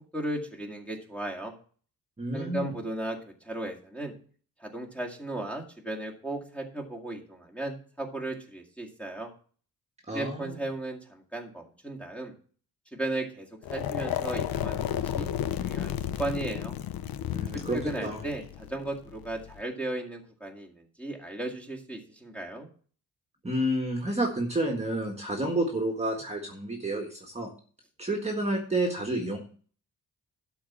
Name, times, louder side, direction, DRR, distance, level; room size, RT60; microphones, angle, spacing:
voice 1, 0.1-1.5 2.3-3.2 3.4-4.1 4.6-9.3 10.1-12.3 12.9-15.3 15.6-16.8 17.5-22.7, right 2 dB, 5° left, 0 dB, 2.1 m, -36 dB
voice 2, 2.2-2.7 10.1-10.6 17.3-18.2 23.4-27.5 28.0-29.4, right 1 dB, 20° right, 1 dB, 1.7 m, -30 dB
sound 1, 13.6-19.6, left 10 dB, 90° left, 0.8 m, -33 dB
12.0 x 4.6 x 7.2 m, 0.42 s
wide cardioid pair, 150°, 35 cm